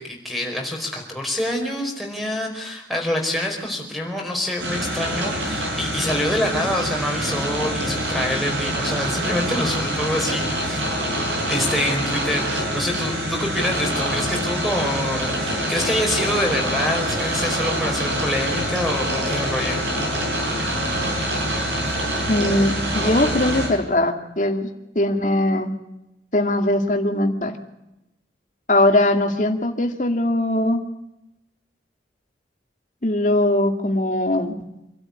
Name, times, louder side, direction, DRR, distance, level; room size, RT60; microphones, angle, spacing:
voice 1, 0.0-10.8 11.5-19.8, left 1 dB, ahead, 2 dB, 4.9 m, -26 dB
sound 1, 4.6-23.7, right 1 dB, 85° right, 7.9 m, -25 dB
voice 2, 22.3-24.7 25.0-25.7 26.3-27.6 28.7-30.8 33.0-34.6, left 1 dB, 45° left, 4 dB, 2.3 m, -20 dB
26.5 x 13.0 x 9.8 m, 0.90 s
head